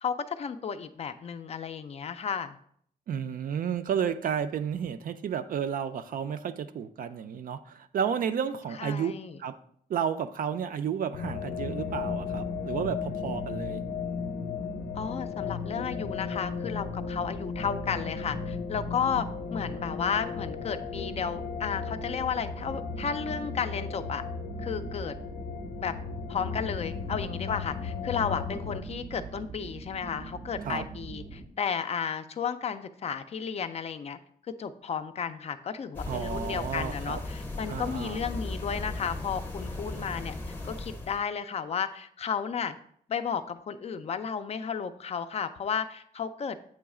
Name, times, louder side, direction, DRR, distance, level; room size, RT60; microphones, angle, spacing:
voice 1, 0.0-2.6 8.8-9.4 14.9-24.2 24.6-25.2 25.8-25.9 26.3-34.2 34.5-40.4 40.6-42.8 43.1-46.6, left 7 dB, 40° left, 10 dB, 0.3 m, -33 dB
voice 2, 3.1-9.1 9.4-9.6 9.9-13.8 30.6-30.9 36.1-37.2 37.7-38.2, right 8 dB, 60° right, 11 dB, 0.4 m, -32 dB
sound 1, 11.1-28.8, left 6 dB, 90° left, 0.6 m, -36 dB
sound 2, 11.6-31.5, right 3 dB, 90° right, 1.2 m, -43 dB
sound 3, 35.9-41.2, left 2 dB, 10° left, 0.7 m, -37 dB
7.7 x 3.1 x 4.8 m, 0.64 s
wide cardioid pair, 175°, 16 cm